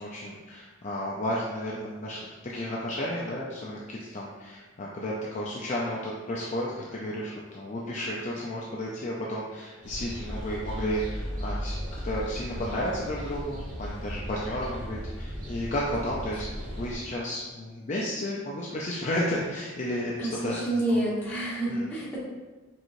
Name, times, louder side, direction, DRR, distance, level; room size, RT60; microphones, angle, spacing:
voice 1, 0.0-21.0 21.7-21.9, left 1 dB, 35° left, -5 dB, 0.5 m, -33 dB
sound 1, 9.8-17.0, equal, 45° right, 1.2 m, -36 dB
voice 2, 20.2-22.2, right 1 dB, 10° left, -9 dB, 1.4 m, -28 dB
4.7 x 3.8 x 2.6 m, 1.2 s
head